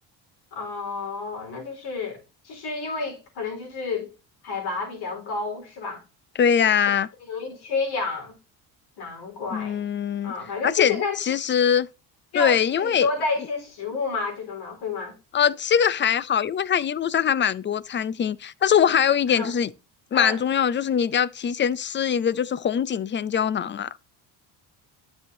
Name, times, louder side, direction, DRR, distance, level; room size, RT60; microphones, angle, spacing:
voice 1, 0.5-4.1 4.4-6.0 7.2-8.3 9.0-9.9 10.2-11.2 12.3-15.1 19.3-19.5 20.1-20.4, left 4 dB, 70° left, 4.3 m, -30 dB
voice 2, 6.4-7.1 9.5-10.3 10.6-11.9 12.3-13.1 15.3-19.7 20.1-23.9, left 8 dB, 30° left, 0.5 m, -22 dB
9.9 x 6.3 x 2.7 m
cardioid pair, 95°, 41 cm